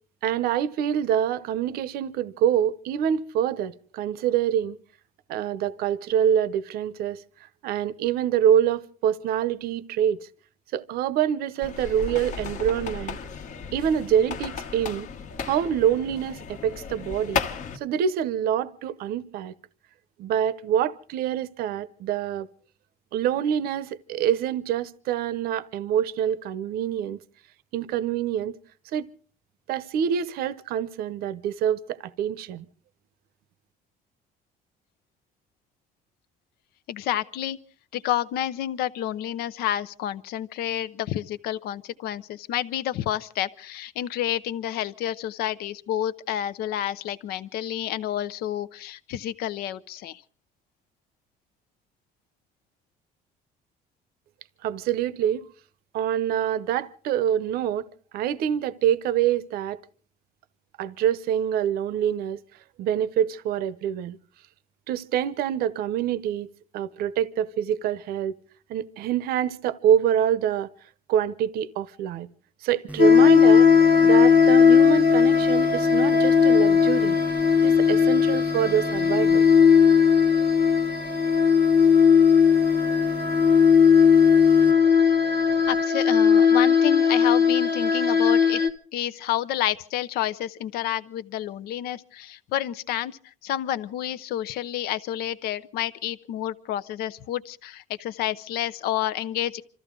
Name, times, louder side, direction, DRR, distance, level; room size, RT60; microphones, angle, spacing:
voice 1, 0.2-4.8 5.3-7.2 7.6-10.2 10.7-13.2 13.7-15.1 15.4-17.4 17.7-19.5 20.2-22.5 23.1-27.2 27.7-28.6 28.9-29.1 29.7-32.7 54.6-55.5 55.9-57.9 58.1-59.8 60.8-62.4 62.8-64.2 64.9-66.5 66.7-68.4 68.7-70.7 71.1-72.3 72.6-73.7 74.0-77.2 77.6-79.4, right 9 dB, 70° right, 0.8 m, -25 dB
sound 1, 11.6-17.8, left 5 dB, 50° left, 1.2 m, -34 dB
voice 2, 36.9-37.6 37.9-50.2 85.6-88.6 88.9-99.6, left 12 dB, 70° left, 0.7 m, -29 dB
sound 2, 72.9-85.8, right 2 dB, 10° right, 0.7 m, -37 dB
sound 3, 73.0-88.7, left 6 dB, 85° left, 1.1 m, -18 dB
26.5 x 14.0 x 3.8 m
cardioid pair, 160°, 16 cm